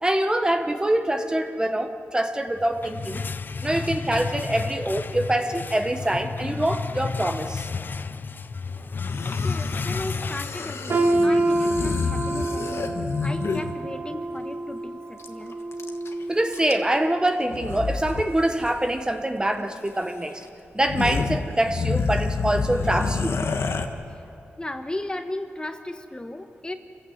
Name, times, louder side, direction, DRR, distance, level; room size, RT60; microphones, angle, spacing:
voice 1, 0.0-3.2 3.6-7.7 16.3-20.5 20.7-23.4, right 1 dB, 15° right, 6 dB, 1.1 m, -25 dB
sound 1, 2.6-11.2, left 4 dB, 45° left, 0.6 m, -31 dB
sound 2, 9.0-13.8 15.2-15.3 15.5-16.1 16.5-17.0 17.5-18.3 18.5-18.7 19.9-20.0 20.4-20.5 20.8-23.9, left 4 dB, 65° left, 1.5 m, -28 dB
voice 2, 9.4-15.6 24.6-26.7, left 1 dB, 20° left, 7 dB, 1.3 m, -35 dB
sound 3, 10.9-16.8 17.2-17.5 18.2-18.3, right 2 dB, 55° right, 1.8 m, -27 dB
27.5 x 15.5 x 8.0 m, 2.6 s
wide cardioid pair, 90°, 5 cm